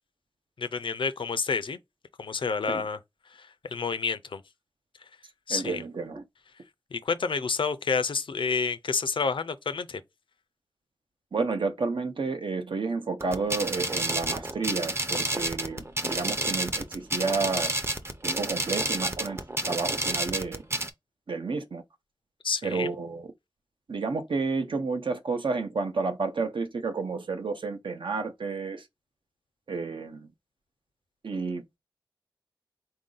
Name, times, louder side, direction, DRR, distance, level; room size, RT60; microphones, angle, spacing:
voice 1, 0.6-1.8 2.2-3.0 3.3-4.4 5.5-5.8 6.9-10.0 22.4-22.9, left 5 dB, 80° left, 0.4 m, -29 dB
voice 2, 5.5-6.2 11.3-17.7 18.2-20.6 21.3-21.8 22.6-23.3 23.9-28.9 29.7-30.3 31.2-31.8, right 4 dB, 75° right, 0.7 m, -31 dB
sound 1, 13.2-20.9, right 1 dB, 30° right, 0.6 m, -30 dB
3.9 x 2.6 x 3.8 m
wide cardioid pair, 65°, 9 cm